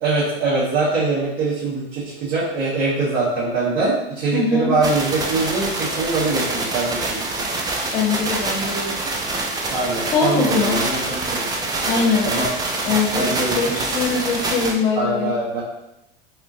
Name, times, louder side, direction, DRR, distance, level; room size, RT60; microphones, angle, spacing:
voice 1, 0.0-7.4 9.7-11.6 12.2-12.4 13.1-13.8 14.9-15.6, right 3 dB, 50° right, -10 dB, 1.2 m, -23 dB
voice 2, 4.3-4.7 7.9-9.0 10.1-10.8 11.8-12.3 12.8-15.3, left 4 dB, 70° left, -1 dB, 0.9 m, -22 dB
sound 1, 4.8-14.7, right 2 dB, 15° right, 0.4 m, -25 dB
2.8 x 2.5 x 2.5 m, 0.88 s
hypercardioid pair, 90°, 29 cm